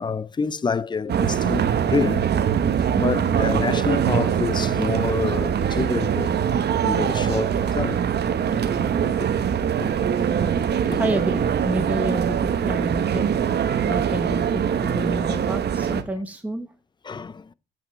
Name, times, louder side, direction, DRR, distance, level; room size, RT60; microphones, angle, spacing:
voice 1, 0.0-2.3 2.9-6.3 6.8-8.0 8.5-8.9 9.2-9.3 9.8-10.1 10.9-11.0 17.0-17.5, left 5 dB, 20° left, 0.5 m, -28 dB
sound 1, 1.1-16.0, right 8 dB, 55° right, 1.0 m, -23 dB
voice 2, 11.0-13.4 13.9-16.7, right 1 dB, 5° right, 1.1 m, -29 dB
8.7 x 5.4 x 6.6 m
cardioid pair, 90°, 20 cm